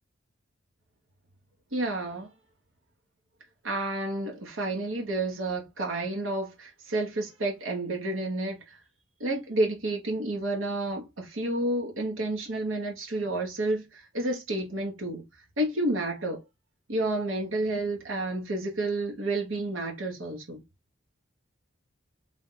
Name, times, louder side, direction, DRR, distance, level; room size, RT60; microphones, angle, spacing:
voice 1, 1.7-2.3 3.6-8.7 9.2-15.2 15.6-16.4 16.9-20.6, right 2 dB, 85° right, 1.1 m, -30 dB
3.5 x 2.3 x 3.8 m
head